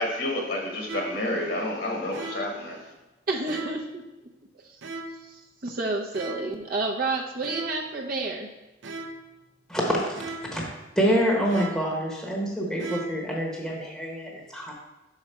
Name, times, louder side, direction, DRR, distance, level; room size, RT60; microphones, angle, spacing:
voice 1, 0.0-2.9, left 1 dB, 60° left, 0 dB, 1.3 m, -29 dB
sound 1, 0.9-1.3 2.1-2.6 3.5-3.9 4.8-5.3 6.1-6.6 7.4-8.0 8.8-9.3 10.2-10.6 11.5-12.0 12.8-13.3, right 2 dB, 90° right, 0.6 m, -38 dB
voice 2, 3.3-4.0 4.6-4.8 5.2-8.5, right 3 dB, 50° right, -1 dB, 0.7 m, -30 dB
voice 3, 9.7-10.6 11.0-14.7, equal, ahead, -2 dB, 1.0 m, -26 dB
5.9 x 4.8 x 4.3 m, 1.0 s
head